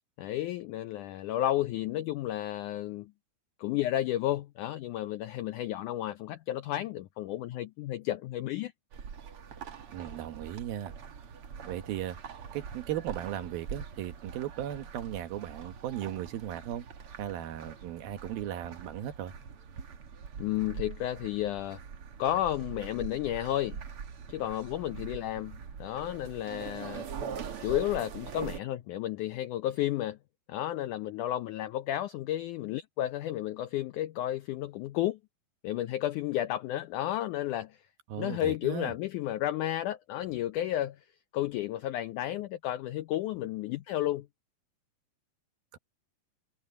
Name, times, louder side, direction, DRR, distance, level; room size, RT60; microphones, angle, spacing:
voice 1, 0.2-3.1 3.6-8.7 20.4-21.8 22.2-23.8 24.3-27.1 27.6-30.2 30.5-35.2 35.6-37.8 38.2-41.0 41.3-44.3, left 13 dB, 85° left, 1.8 m, -32 dB
sound 1, 8.9-28.6, right 6 dB, 50° right, 1.9 m, -43 dB
voice 2, 9.9-10.9 11.7-12.2 12.5-16.9 17.2-19.3 38.1-38.9 45.7-45.8, right 11 dB, 75° right, 3.0 m, -37 dB
omnidirectional pair, 4.4 m